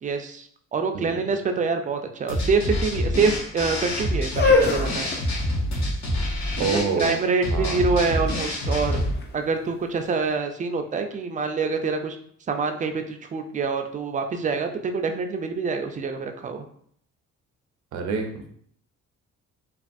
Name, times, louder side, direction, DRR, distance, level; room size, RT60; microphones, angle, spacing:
voice 1, 0.0-5.1 6.7-9.0 9.3-12.2 12.5-16.6, right 4 dB, 25° right, 6 dB, 0.4 m, -26 dB
sound 1, 2.3-9.1, left 1 dB, 60° left, 1.0 m, -27 dB
sound 2, 4.2-10.1, left 4 dB, 35° left, 0.5 m, -27 dB
voice 2, 6.6-7.2 7.5-7.8 17.9-18.5, right 4 dB, 75° right, 5 dB, 0.6 m, -27 dB
3.2 x 2.3 x 2.5 m, 0.63 s
cardioid pair, 90°, 30 cm